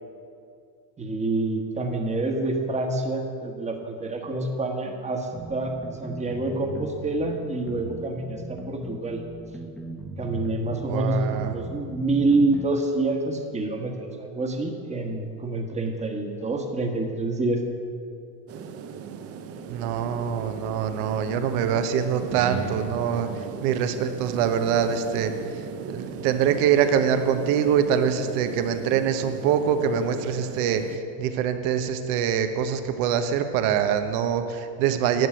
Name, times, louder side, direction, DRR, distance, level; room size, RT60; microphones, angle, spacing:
voice 1, 1.0-5.7 6.0-9.2 10.2-17.6 22.2-22.8, right 2 dB, 15° right, 3 dB, 1.3 m, -27 dB
sound 1, 5.3-12.7, right 1 dB, ahead, 1.1 m, -38 dB
voice 2, 10.9-11.5 19.7-23.3 23.6-25.3 25.9-35.3, right 8 dB, 75° right, 8 dB, 1.1 m, -24 dB
sound 2, 18.5-31.0, right 6 dB, 35° right, 0.7 m, -38 dB
11.0 x 6.3 x 9.0 m, 2.4 s
cardioid pair, 130°, 44 cm